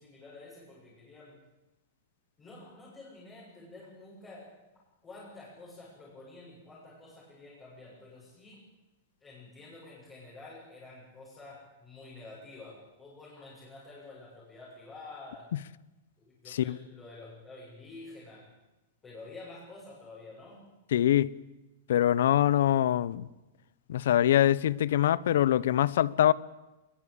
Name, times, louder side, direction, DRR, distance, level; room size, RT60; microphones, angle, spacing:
voice 1, 0.0-1.4 2.4-4.5 5.0-8.6 9.2-15.5 16.2-18.5 19.0-20.6, left 2 dB, 15° left, 7.3 m, -49 dB
voice 2, 16.5-16.8 20.9-21.3 21.9-23.3 23.9-26.3, left 11 dB, 75° left, 0.8 m, -24 dB
22.0 x 21.5 x 8.4 m
supercardioid pair, 160°, 0 cm